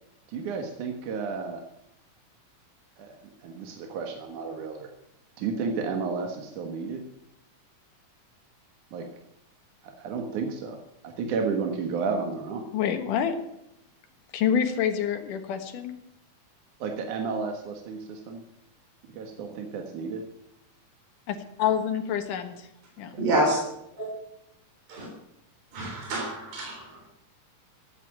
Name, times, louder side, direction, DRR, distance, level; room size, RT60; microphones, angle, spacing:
voice 1, 0.3-1.7 3.0-4.9 5.4-7.1 8.9-9.1 9.8-10.8 11.0-12.7 16.8-18.4 19.0-20.3 23.1-23.2, right 5 dB, 75° right, 4 dB, 3.0 m, -32 dB
voice 2, 12.7-13.4 14.3-16.0 21.3-22.7 23.0-23.1, left 8 dB, 90° left, 7 dB, 3.0 m, -27 dB
voice 3, 23.2-23.6 24.0-24.1 24.9-25.1 25.7-27.0, right 1 dB, 60° right, -1 dB, 4.9 m, -27 dB
15.5 x 8.6 x 8.8 m, 0.81 s
omnidirectional pair, 3.6 m